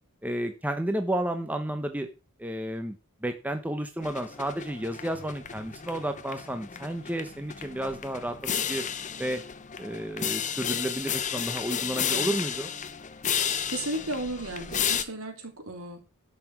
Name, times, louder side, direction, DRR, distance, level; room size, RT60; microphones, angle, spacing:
voice 1, 0.2-2.1 2.4-8.4 8.7-8.8 9.2-9.4 9.8-12.7, right 1 dB, 5° right, 6 dB, 1.0 m, -32 dB
sound 1, 4.0-15.0, left 8 dB, 35° left, 0.9 m, -33 dB
voice 2, 13.3-16.1, right 1 dB, 65° right, 4 dB, 3.6 m, -35 dB
12.0 x 5.9 x 6.1 m, 0.31 s
head